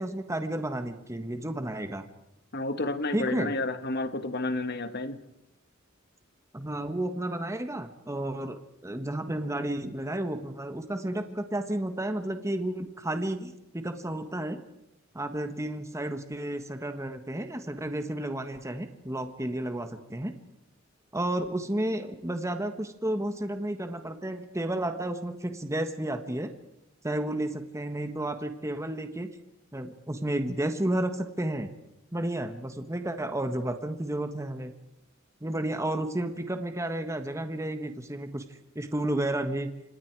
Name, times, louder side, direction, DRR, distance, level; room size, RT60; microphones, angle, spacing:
voice 1, 0.0-2.1 3.1-3.5 6.5-14.6 15.1-20.4 21.1-26.5 27.0-29.3 29.7-31.7 32.1-34.7 35.4-38.4 38.7-39.7, right 1 dB, 15° right, 8 dB, 1.5 m, -32 dB
voice 2, 2.5-5.2, left 2 dB, 55° left, 10 dB, 1.8 m, -31 dB
28.5 x 26.5 x 4.8 m, 0.86 s
head